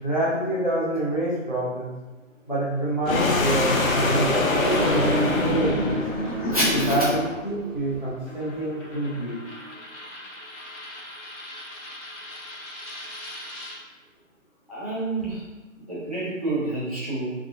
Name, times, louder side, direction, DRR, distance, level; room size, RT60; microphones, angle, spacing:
voice 1, 0.0-1.9 2.5-6.0 6.7-9.4, right 1 dB, 35° left, -7 dB, 0.5 m, -27 dB
Accelerating revving vroom, 3.0-9.7, right 1 dB, 65° right, 0.5 m, -33 dB
sound 1, 3.1-7.4, left 2 dB, 90° left, 0.6 m, -24 dB
voice 2, 6.4-7.0 14.7-15.4 15.9-17.3, right 1 dB, 30° right, -11 dB, 0.8 m, -28 dB
Coin (dropping), 8.3-13.8, left 1 dB, 65° left, 1.1 m, -41 dB
3.5 x 2.3 x 2.4 m, 1.1 s
figure-of-eight pair, 175°, 40 cm